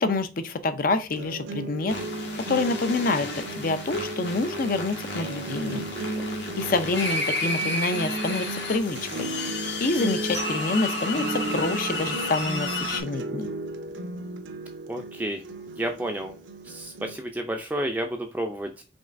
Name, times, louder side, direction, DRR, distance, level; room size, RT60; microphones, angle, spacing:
voice 1, 0.0-1.9 2.5-5.9 6.6-9.3 9.8-13.5, left 3 dB, 50° left, 0.5 m, -27 dB
sound 1, 1.2-17.2, right 2 dB, 85° right, 0.7 m, -35 dB
sound 2, 1.9-13.0, left 1 dB, 65° left, 1.5 m, -32 dB
voice 2, 6.2-6.7 14.9-15.4 15.8-16.3 16.6-18.8, right 1 dB, 10° right, 0.4 m, -31 dB
5.2 x 3.2 x 2.5 m
head